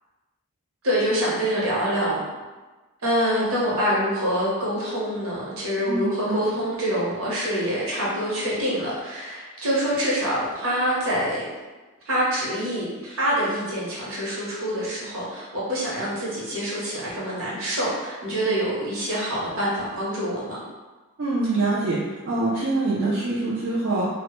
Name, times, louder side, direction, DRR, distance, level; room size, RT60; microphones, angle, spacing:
voice 1, 0.8-2.2 3.0-11.5 12.1-20.6, equal, 65° right, -6 dB, 0.8 m, -25 dB
voice 2, 5.9-6.4 21.2-22.0 22.2-24.1, right 2 dB, 50° right, -7 dB, 0.4 m, -24 dB
2.0 x 2.0 x 2.9 m, 1.2 s
head